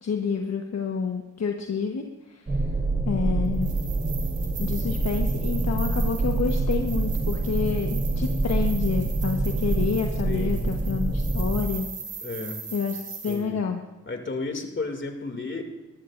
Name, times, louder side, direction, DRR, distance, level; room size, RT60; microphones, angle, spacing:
voice 1, 0.0-2.6 3.0-3.7 4.6-11.9 12.7-13.8, left 6 dB, 55° left, 3 dB, 1.3 m, -29 dB
sound 1, 2.5-11.7, right 2 dB, 25° right, 1.7 m, -26 dB
sound 2, 3.5-13.4, right 5 dB, 75° right, 4.2 m, -40 dB
voice 2, 10.2-10.6 12.2-12.6 13.3-13.6 14.1-15.6, left 3 dB, 40° left, 4 dB, 2.6 m, -33 dB
22.0 x 13.0 x 2.6 m, 1.1 s
cardioid pair, 60°, 31 cm